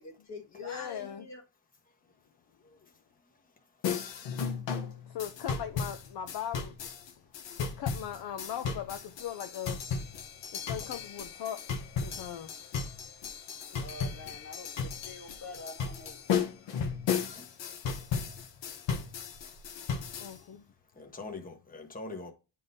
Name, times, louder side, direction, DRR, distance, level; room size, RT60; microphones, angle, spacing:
voice 1, 0.0-1.4 13.8-16.2, left 2 dB, 40° left, 1.7 m, -45 dB
voice 2, 0.6-1.3 5.1-6.8 7.6-9.9 10.5-11.7 12.0-12.6 20.2-20.6, left 9 dB, 60° left, 0.6 m, -39 dB
sound 1, 3.8-20.4, left 6 dB, 80° left, 1.1 m, -35 dB
voice 3, 17.1-17.5 20.4-20.5 21.0-22.3, left 3 dB, 20° left, 1.1 m, -43 dB
10.5 x 3.7 x 2.7 m
wide cardioid pair, 145°, 43 cm